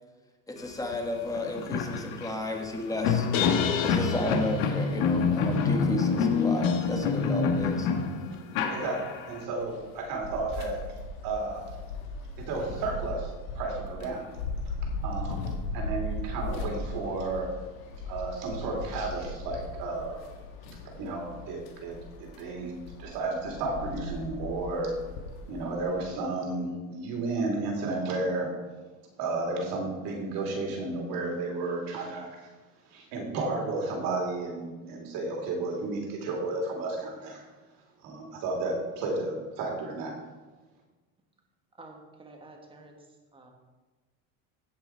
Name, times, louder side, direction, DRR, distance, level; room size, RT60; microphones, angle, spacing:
voice 1, 0.5-3.3 3.8-7.9, left 1 dB, 10° left, 3 dB, 1.3 m, -33 dB
sound 1, 0.9-1.0 1.3-9.4, left 5 dB, 65° left, 1.5 m, -26 dB
voice 2, 8.7-9.0 9.3-10.8 11.2-11.6 12.3-13.3 13.5-14.3 15.0-17.5 18.1-20.2 21.0-24.9 25.5-28.5 29.2-32.5 32.9-37.4 38.0-40.1, right 3 dB, 60° right, 0 dB, 3.2 m, -32 dB
sound 2, 9.6-26.0, left 2 dB, 85° left, 1.7 m, -38 dB
voice 3, 41.8-43.1 43.3-43.5, right 2 dB, 15° right, 2 dB, 1.7 m, -50 dB
16.5 x 5.5 x 4.5 m, 1.3 s
supercardioid pair, 135°, 39 cm